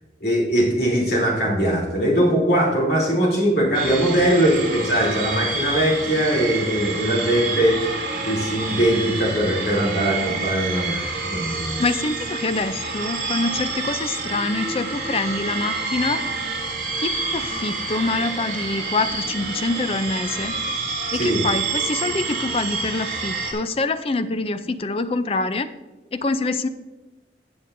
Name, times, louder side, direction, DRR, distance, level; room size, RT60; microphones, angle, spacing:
voice 1, 0.2-7.9 8.2-11.8 21.2-21.4, equal, 60° left, -3 dB, 3.2 m, -21 dB
sound 1, 3.7-23.5, right 3 dB, 50° right, 3.0 m, -28 dB
voice 2, 11.8-16.2 17.0-20.5 20.8-25.7 26.1-26.7, left 3 dB, 30° left, 11 dB, 0.4 m, -25 dB
15.0 x 7.8 x 2.6 m, 1.1 s
head